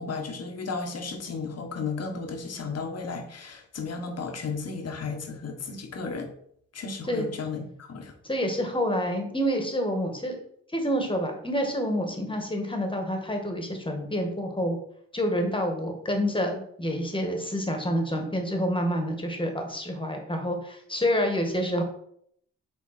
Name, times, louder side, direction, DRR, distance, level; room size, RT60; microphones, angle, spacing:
voice 1, 0.0-6.3 6.7-8.1, left 4 dB, 50° left, 4 dB, 1.4 m, -34 dB
voice 2, 8.2-10.4 10.7-14.8 15.1-21.8, equal, 15° left, 3 dB, 1.9 m, -28 dB
6.1 x 3.8 x 4.3 m, 0.68 s
supercardioid pair, 55°, 31 cm